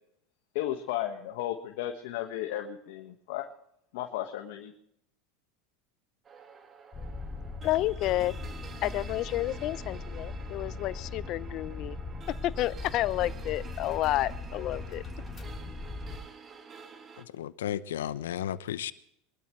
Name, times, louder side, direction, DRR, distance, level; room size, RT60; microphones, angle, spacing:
voice 1, 0.5-3.5 3.9-4.7, left 12 dB, 70° left, 1.6 m, -34 dB
sound 1, 6.2-17.2, right 6 dB, 30° right, 1.9 m, -49 dB
sound 2, 6.9-16.2, left 3 dB, 25° left, 3.5 m, -39 dB
voice 2, 7.6-8.4 8.8-12.0 12.4-15.0, left 15 dB, 50° left, 0.7 m, -30 dB
voice 3, 17.2-18.9, left 10 dB, 85° left, 0.8 m, -34 dB
23.0 x 12.5 x 3.2 m
hypercardioid pair, 105°, 0 cm